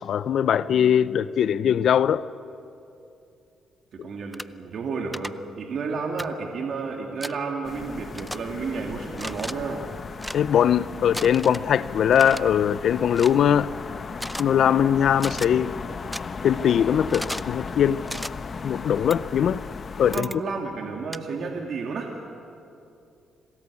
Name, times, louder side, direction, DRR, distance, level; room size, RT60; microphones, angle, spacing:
voice 1, 0.0-2.2 10.3-13.7 14.4-15.7 16.4-18.0 18.6-19.6 20.0-20.3, left 9 dB, 65° left, 0.5 m, -21 dB
voice 2, 3.9-9.9 20.1-22.1, right 4 dB, 60° right, 2.3 m, -31 dB
sound 1, 4.3-4.5 5.1-5.3 6.2-6.3 7.2-7.4 8.1-8.4 9.1-9.5 10.2-10.4 11.1-11.6 12.1-12.4 13.2-13.4 14.2-14.4 15.2-15.5 16.1-16.2 17.1-17.5 18.1-18.3 19.1-19.2 20.1-20.4 21.1-21.2, equal, ahead, 0.5 m, -34 dB
sound 2, 7.6-20.2, left 5 dB, 40° left, 1.0 m, -36 dB
27.0 x 19.5 x 8.4 m
cardioid pair, 90°, 0 cm